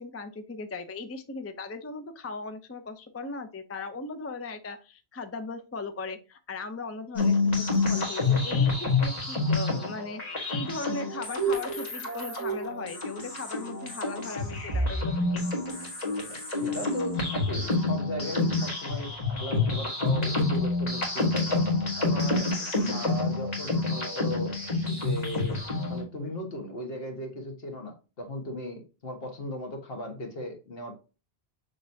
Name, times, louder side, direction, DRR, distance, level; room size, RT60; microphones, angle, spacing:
voice 1, 0.0-10.2 10.5-15.4, left 3 dB, 25° left, 8 dB, 0.3 m, -38 dB
sound 1, 7.2-26.0, left 3 dB, 40° left, 1.5 m, -28 dB
voice 2, 16.3-21.7 22.0-22.6 22.9-24.6 24.9-30.9, equal, 65° left, 3 dB, 1.6 m, -37 dB
6.5 x 3.0 x 2.6 m, 0.31 s
omnidirectional pair, 1.1 m